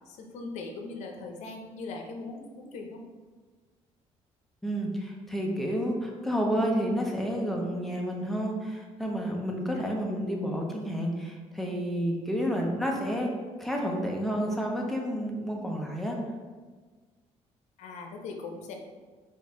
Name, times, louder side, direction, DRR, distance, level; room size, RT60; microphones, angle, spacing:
voice 1, 0.1-3.0 17.8-18.7, left 3 dB, 80° left, 3 dB, 0.6 m, -40 dB
voice 2, 4.6-13.3 13.6-16.2, equal, ahead, -1 dB, 0.5 m, -30 dB
4.4 x 2.5 x 3.5 m, 1.4 s
cardioid pair, 150°, 12 cm